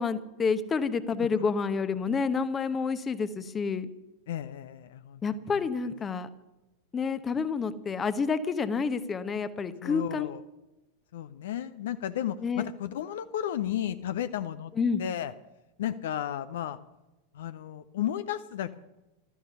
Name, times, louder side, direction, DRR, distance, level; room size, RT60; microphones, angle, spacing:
voice 1, 0.0-3.9 5.2-6.3 6.9-10.3 12.4-12.6 14.8-15.0, left 5 dB, 20° left, 13 dB, 0.9 m, -29 dB
voice 2, 4.3-5.2 5.5-5.6 9.8-10.4 11.1-14.7 15.0-15.3 15.8-16.8 17.3-18.8, left 11 dB, 60° left, 12 dB, 0.6 m, -33 dB
15.5 x 13.0 x 5.6 m, 1.0 s
figure-of-eight pair, 90°, 0 cm